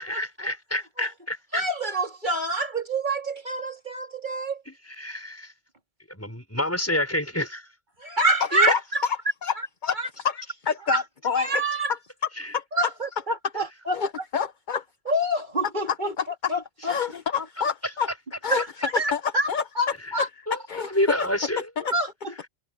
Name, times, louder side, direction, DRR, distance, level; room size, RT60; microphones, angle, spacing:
voice 1, 0.0-1.6 4.7-5.5 6.1-7.7 8.5-8.7 12.4-12.5 20.5-20.6 20.9-21.7, left 1 dB, 10° left, 6.4 m, -28 dB
voice 2, 1.5-4.6 8.0-9.0 9.6-9.7 9.9-10.1 10.9-11.0 11.3-11.9 12.7-14.0 15.1-16.1 16.5-16.9 18.5-18.7 18.9-19.5 19.7-20.3 21.9-22.5, right 1 dB, 40° right, 3.2 m, -27 dB
voice 3, 10.2-11.6 12.5-12.6 13.9-14.8 16.9-18.1 18.4-18.6 19.1-19.2 19.5-19.6 20.1-20.3 20.7-21.3 21.8-21.9, left 6 dB, 45° left, 1.1 m, -27 dB
omnidirectional pair, 1.2 m